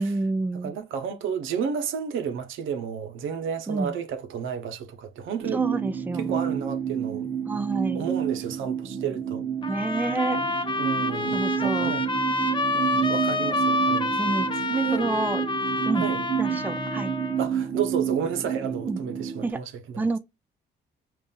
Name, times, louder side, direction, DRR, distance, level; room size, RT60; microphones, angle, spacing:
voice 1, 0.0-0.7 3.7-4.0 5.5-6.3 7.5-8.1 9.7-10.4 11.3-11.9 14.2-14.6 14.9-15.4 15.9-16.1 16.4-17.1 18.9-19.0 19.4-19.6 20.0-20.2, right 3 dB, 10° right, 0.4 m, -28 dB
voice 2, 0.6-5.6 6.1-7.3 7.9-9.4 10.8-12.0 12.7-14.2 14.7-15.1 16.0-16.2 17.4-20.1, right 7 dB, 80° right, 0.8 m, -31 dB
sound 1, 5.4-19.5, right 8 dB, 35° right, 0.8 m, -29 dB
sound 2, 9.6-17.4, left 2 dB, 25° left, 0.7 m, -28 dB
5.3 x 2.5 x 2.4 m
cardioid pair, 90°, 20 cm